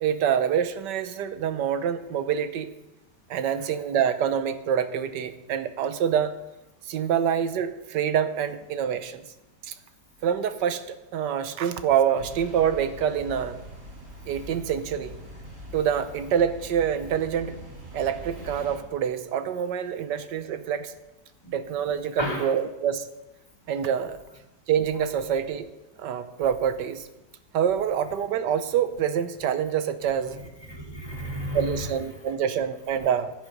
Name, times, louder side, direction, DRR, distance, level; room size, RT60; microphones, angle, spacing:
voice 1, 0.0-2.7 3.3-6.3 6.9-9.2 9.7-9.8 10.2-10.8 11.1-13.6 14.3-15.2 15.7-17.5 17.9-20.9 21.5-23.1 23.7-24.2 24.7-25.7 26.0-27.0 27.5-30.4 31.5-33.3, right 8 dB, 80° right, 11 dB, 1.5 m, -26 dB
sound 1, 12.2-18.8, equal, 45° right, 3.1 m, -43 dB
voice 2, 22.2-22.5 30.1-32.3, left 1 dB, 15° left, 0 dB, 2.2 m, -34 dB
11.5 x 9.9 x 5.4 m, 0.97 s
omnidirectional pair, 1.9 m